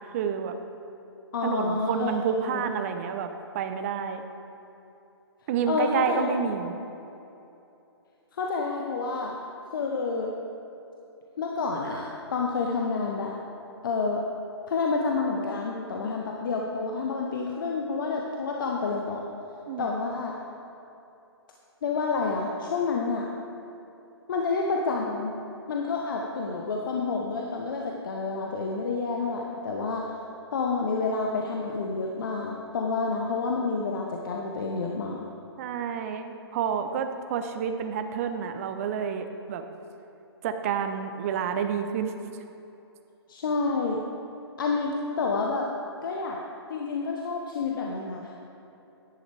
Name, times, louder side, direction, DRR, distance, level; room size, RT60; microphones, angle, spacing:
voice 1, 0.1-0.6 1.4-3.3 3.5-4.2 5.5-6.7 19.7-19.9 35.6-39.6 40.4-42.1, right 7 dB, 35° right, 8 dB, 0.7 m, -29 dB
voice 2, 1.3-2.1 2.5-2.7 5.7-6.3 8.3-9.5 9.7-10.3 11.4-13.3 13.8-14.3 14.7-19.2 19.8-20.4 21.8-23.3 24.3-25.3 25.7-30.0 30.5-35.3 43.3-44.0 44.6-45.7 46.0-46.4 46.7-48.5, left 4 dB, 50° left, 0 dB, 1.0 m, -29 dB
13.5 x 10.5 x 3.4 m, 2.9 s
figure-of-eight pair, 130°, 14 cm